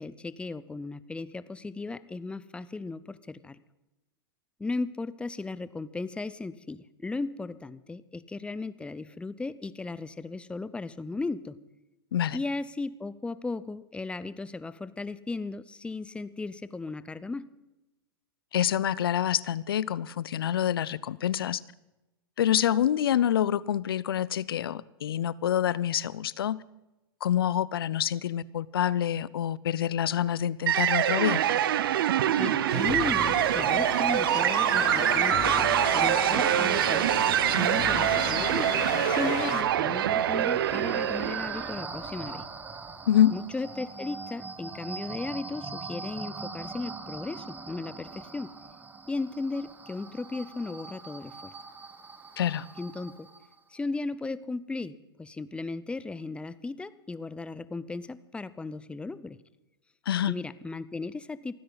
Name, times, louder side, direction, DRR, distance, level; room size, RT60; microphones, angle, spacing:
voice 1, 0.0-3.6 4.6-11.6 12.3-17.5 32.4-37.1 37.6-42.5 43.3-48.5 49.1-51.5 52.8-53.3 53.7-59.4 60.3-61.5, left 3 dB, 10° left, 16 dB, 0.7 m, -36 dB
voice 2, 18.5-21.6 22.4-26.6 27.2-31.4 43.1-43.3 52.4-52.7 60.1-60.4, left 10 dB, 75° left, 21 dB, 0.6 m, -26 dB
sound 1, 30.7-41.8, right 11 dB, 70° right, 0.8 m, -25 dB
sound 2, 32.7-39.6, left 9 dB, 50° left, 2.4 m, -35 dB
sound 3, 40.2-53.6, right 4 dB, 15° right, 1.3 m, -42 dB
29.0 x 10.0 x 4.0 m, 0.98 s
hypercardioid pair, 105°, 12 cm